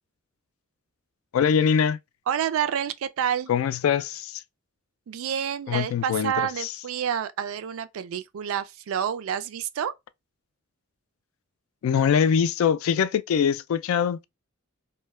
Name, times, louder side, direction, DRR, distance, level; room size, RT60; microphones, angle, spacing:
voice 1, 1.3-2.0 3.5-4.4 5.7-6.7 11.8-14.2, left 7 dB, 75° left, 0.3 m, -23 dB
voice 2, 2.3-3.5 5.1-9.9, right 9 dB, 75° right, 0.3 m, -28 dB
2.2 x 2.1 x 3.1 m
head